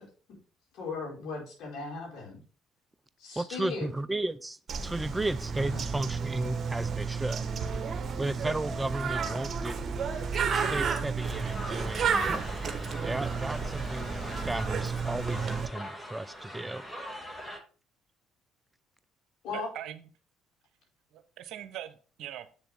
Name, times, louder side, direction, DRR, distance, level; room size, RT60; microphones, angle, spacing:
voice 1, 0.7-2.4 3.2-3.9 5.7-5.9 19.4-19.7, left 4 dB, 65° left, -2 dB, 5.1 m, -37 dB
voice 2, 3.4-7.5 8.2-9.7 10.5-12.3 13.0-16.8, right 2 dB, 15° right, 15 dB, 0.5 m, -34 dB
Bird, 4.7-15.7, right 5 dB, 45° right, 1.3 m, -32 dB
sound 1, 11.2-17.6, equal, 10° left, 2.4 m, -42 dB
voice 3, 19.5-20.1 21.1-22.5, right 11 dB, 65° right, 11 dB, 0.9 m, -41 dB
7.9 x 6.9 x 3.7 m, 0.37 s
hypercardioid pair, 55°, 0 cm